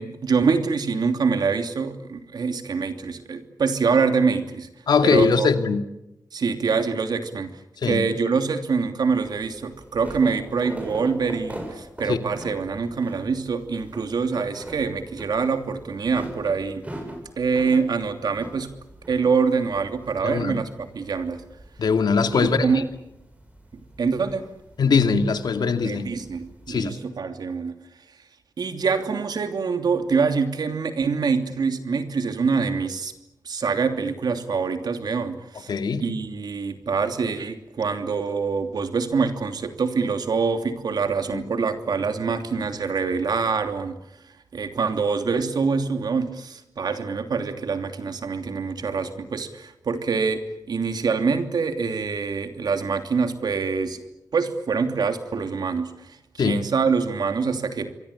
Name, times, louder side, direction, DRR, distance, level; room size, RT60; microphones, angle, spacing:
voice 1, 0.0-4.7 5.0-5.5 6.3-16.8 17.4-18.7 19.1-21.4 22.3-22.9 24.0-24.4 25.8-27.8 28.6-33.1 33.4-35.7 36.0-44.0 44.5-54.0 54.3-57.9, right 5 dB, 80° right, 2.9 m, -25 dB
voice 2, 4.9-5.8 7.8-8.0 12.1-12.2 20.2-20.6 21.8-22.7 24.8-26.1 26.7-27.0 35.7-36.0 41.3-41.4 56.4-56.6, left 5 dB, 85° left, 2.4 m, -21 dB
sound 1, 9.1-27.0, right 1 dB, 20° right, 8.0 m, -42 dB
27.5 x 23.5 x 8.6 m
wide cardioid pair, 85°, 7 cm